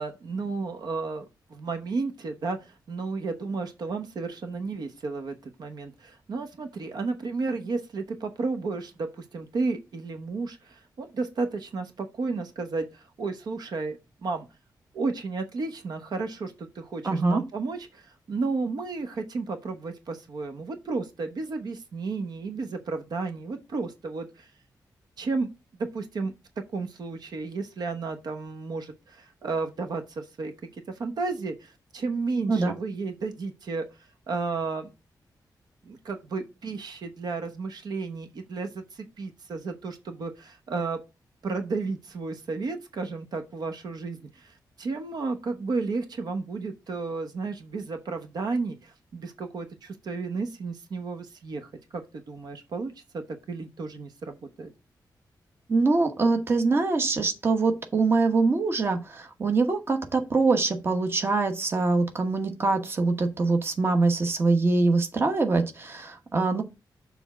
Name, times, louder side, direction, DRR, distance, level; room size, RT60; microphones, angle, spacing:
voice 1, 0.0-14.5 14.9-24.5 25.2-25.5 25.8-26.3 26.7-30.5 30.9-33.8 34.3-34.9 35.8-41.0 41.4-53.2 53.5-54.7, right 4 dB, 65° right, 1.0 m, -33 dB
voice 2, 17.0-17.4 32.5-32.7 55.7-66.6, right 3 dB, 30° right, 1.1 m, -24 dB
6.9 x 3.5 x 6.0 m
wide cardioid pair, 175°, 8 cm